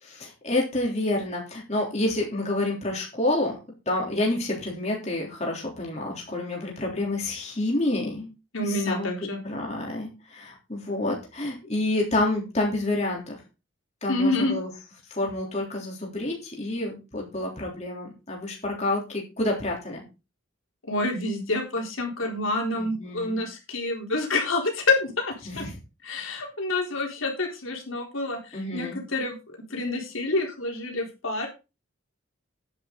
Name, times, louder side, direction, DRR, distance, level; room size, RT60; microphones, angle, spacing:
voice 1, 0.0-3.6 3.9-8.3 8.6-9.1 9.4-13.4 14.0-14.7 15.1-20.0 22.8-23.4 25.5-25.8 28.5-29.0, left 2 dB, 35° left, -1 dB, 3.5 m, -28 dB
voice 2, 8.5-9.4 14.1-14.6 20.8-25.7 26.0-29.4 29.7-31.5, left 2 dB, 75° left, 1 dB, 4.0 m, -28 dB
10.0 x 9.8 x 4.0 m, 0.29 s
head